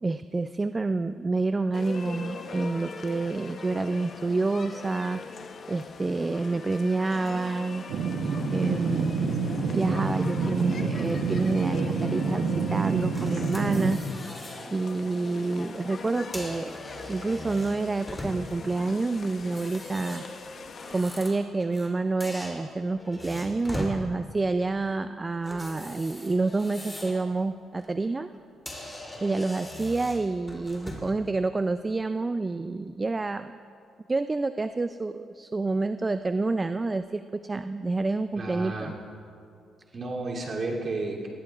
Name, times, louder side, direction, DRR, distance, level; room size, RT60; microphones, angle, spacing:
voice 1, 0.0-5.4 5.7-7.8 8.5-14.3 14.7-16.8 17.0-20.2 20.9-28.3 29.2-33.6 34.1-38.9, right 3 dB, 25° right, 10 dB, 0.3 m, -28 dB
sound 1, 1.7-21.0, left 4 dB, 50° left, 0.8 m, -41 dB
sound 2, 7.9-13.9, right 4 dB, 75° right, 0.9 m, -28 dB
sound 3, 13.2-14.7 15.1-15.4 16.1-18.7 19.4-21.9 22.2-24.0 25.4-27.2 27.6-27.9 28.3-28.4 28.7-31.2, left 1 dB, 10° left, 2.9 m, -41 dB
voice 2, 38.4-39.0 39.9-41.3, right 2 dB, 45° right, -3 dB, 2.8 m, -32 dB
19.5 x 15.5 x 2.4 m, 2.5 s
cardioid pair, 90°, 0 cm